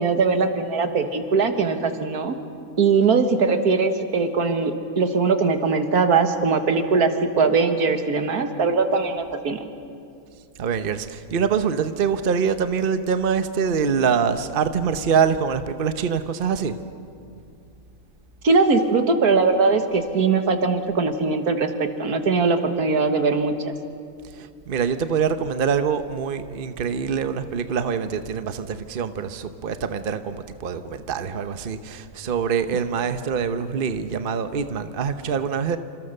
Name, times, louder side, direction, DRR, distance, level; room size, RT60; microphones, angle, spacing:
voice 1, 0.0-2.4 2.8-7.1 7.4-9.7 18.4-23.5, right 4 dB, 85° right, 7 dB, 2.0 m, -21 dB
voice 2, 10.6-16.8 24.3-35.8, right 6 dB, 40° right, 10 dB, 1.0 m, -24 dB
27.5 x 26.0 x 6.6 m, 2.4 s
omnidirectional pair, 1.5 m